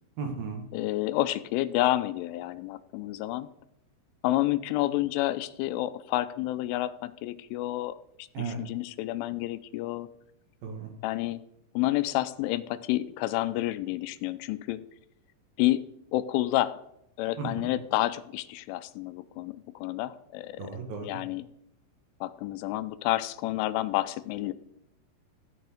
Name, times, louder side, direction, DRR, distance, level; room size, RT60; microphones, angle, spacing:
voice 1, 0.2-0.6 8.3-8.6 10.6-10.9 17.4-17.7 20.6-21.1, right 5 dB, 60° right, 4 dB, 2.8 m, -35 dB
voice 2, 0.7-3.5 4.2-10.1 11.0-11.4 11.8-14.9 15.6-15.8 16.1-16.8 17.2-20.7 21.0-21.4 22.2-24.5, left 16 dB, 85° left, 14 dB, 3.1 m, -29 dB
14.0 x 9.4 x 5.0 m, 0.79 s
omnidirectional pair, 5.6 m